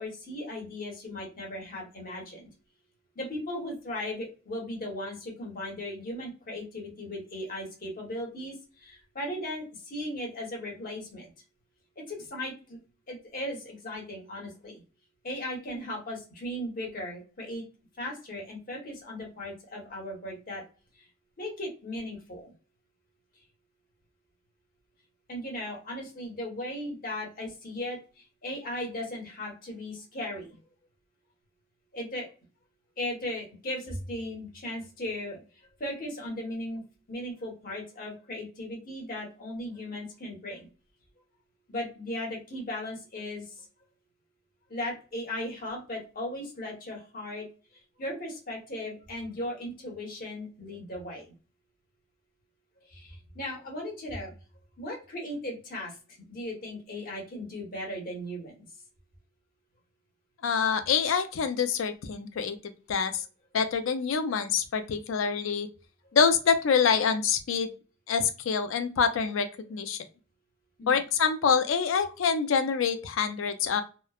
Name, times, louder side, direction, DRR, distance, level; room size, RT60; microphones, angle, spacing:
voice 1, 0.0-2.5 3.1-11.3 12.0-12.8 13.1-14.8 15.2-17.6 18.0-20.6 20.9-21.1 21.4-22.5 23.3-23.4 25.3-30.6 31.9-32.3 33.0-40.7 41.7-43.7 44.7-51.2 52.8-54.3 54.8-56.0 56.3-58.7 70.8-71.0, left 1 dB, 45° left, -1 dB, 1.0 m, -37 dB
voice 2, 60.4-63.2 63.5-65.7 66.1-67.7 68.1-70.0 70.9-73.8, left 6 dB, 75° left, 9 dB, 0.4 m, -26 dB
3.0 x 2.0 x 2.3 m, 0.34 s
head